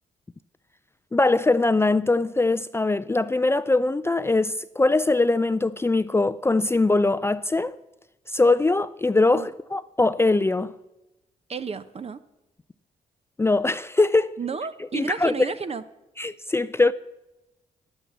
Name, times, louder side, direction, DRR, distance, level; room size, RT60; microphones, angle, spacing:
voice 1, 1.1-7.7 8.3-10.7 13.4-14.3 14.9-15.5 16.2-16.9, left 2 dB, 15° left, 0.4 m, -22 dB
voice 2, 11.5-12.2 14.4-15.8, right 5 dB, 40° right, 0.9 m, -31 dB
11.0 x 9.1 x 7.3 m
cardioid pair, 65°, 15 cm